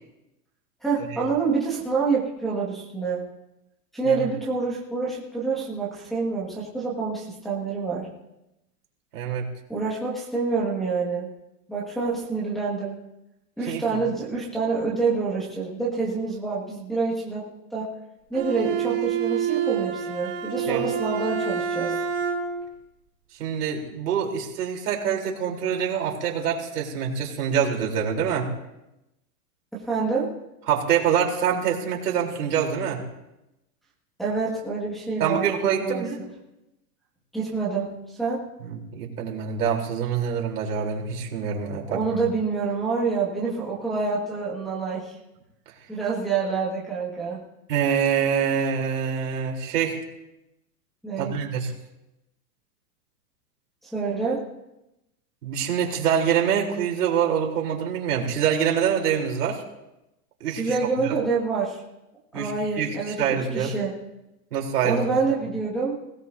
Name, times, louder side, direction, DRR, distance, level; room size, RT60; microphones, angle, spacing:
voice 1, 0.8-3.2 3.9-8.1 9.7-11.3 11.7-13.0 13.6-17.5 17.7-17.9 18.3-22.0 29.7-30.3 34.2-35.4 35.8-36.2 37.3-38.4 41.9-45.2 45.9-47.4 51.0-51.4 53.8-54.4 60.6-61.8 62.3-63.9 64.8-65.9, right 4 dB, ahead, -9 dB, 1.9 m, -27 dB
voice 2, 9.1-9.5 13.7-14.0 20.7-20.8 23.4-28.5 30.7-33.0 35.2-36.2 38.6-42.0 47.7-50.0 51.2-51.7 55.4-59.6 60.4-60.8 62.3-63.7 64.5-65.0, right 8 dB, 80° right, 0 dB, 3.8 m, -25 dB
Bowed string instrument, 18.3-22.7, right 8 dB, 35° right, 2.9 m, -27 dB
21.0 x 17.5 x 2.7 m, 0.93 s
supercardioid pair, 180°, 46 cm